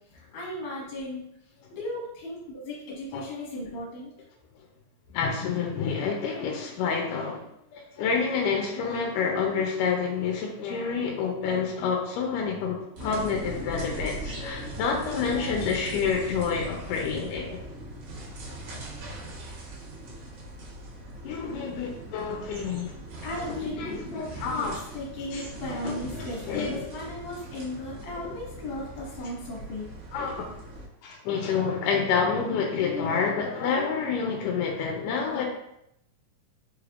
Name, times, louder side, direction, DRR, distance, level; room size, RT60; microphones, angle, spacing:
voice 1, 0.1-1.3 1.7-4.1 23.2-29.8, left 1 dB, 60° left, -5 dB, 2.4 m, -36 dB
voice 2, 5.1-7.4 7.7-17.6 18.7-18.8 21.2-22.9 23.4-24.8 25.3-25.5 25.8-26.9 30.1-30.5 31.0-35.5, left 5 dB, 85° left, 1 dB, 2.2 m, -28 dB
sound 1, 13.0-30.9, right 1 dB, 70° right, 2.3 m, -40 dB
5.5 x 3.3 x 2.4 m, 0.80 s
omnidirectional pair, 3.7 m